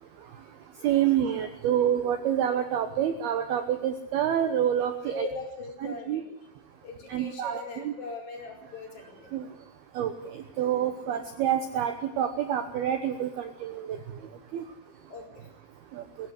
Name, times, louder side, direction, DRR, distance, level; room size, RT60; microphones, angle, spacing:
voice 1, 0.8-5.3 6.1-6.2 7.1-7.9 9.3-9.4 10.0-14.0 14.5-14.6 16.0-16.1, right 10 dB, 70° right, 8 dB, 2.4 m, -27 dB
voice 2, 5.1-6.4 6.8-9.3 15.1-15.5, left 3 dB, 45° left, -1 dB, 6.4 m, -40 dB
22.5 x 16.5 x 8.1 m, 0.84 s
omnidirectional pair, 5.8 m